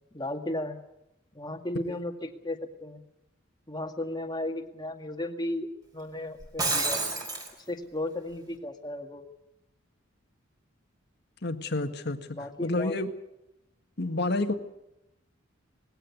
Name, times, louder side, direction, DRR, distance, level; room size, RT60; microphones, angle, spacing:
voice 1, 0.1-0.8 1.3-3.0 3.7-7.0 7.7-9.3 12.3-13.0, left 1 dB, 20° left, 5 dB, 2.0 m, -35 dB
Shatter, 6.4-7.5, right 2 dB, 20° right, 4.6 m, -28 dB
voice 2, 11.4-12.2 12.6-13.1 14.0-14.5, left 2 dB, 55° left, 7 dB, 1.8 m, -29 dB
20.0 x 17.5 x 9.5 m, 0.86 s
head